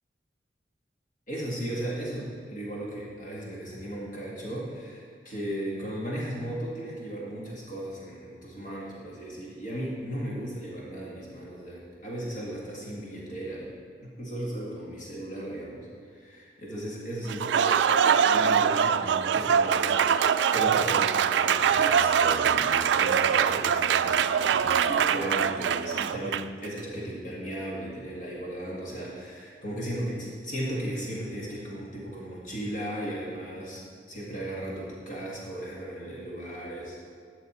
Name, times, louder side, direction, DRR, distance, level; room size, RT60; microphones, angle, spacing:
voice 1, 1.3-13.7 14.0-37.0, right 1 dB, 50° left, -5 dB, 1.8 m, -36 dB
Applause, 17.3-26.7, right 7 dB, 90° right, 0.3 m, -23 dB
12.5 x 6.6 x 4.3 m, 2.1 s
head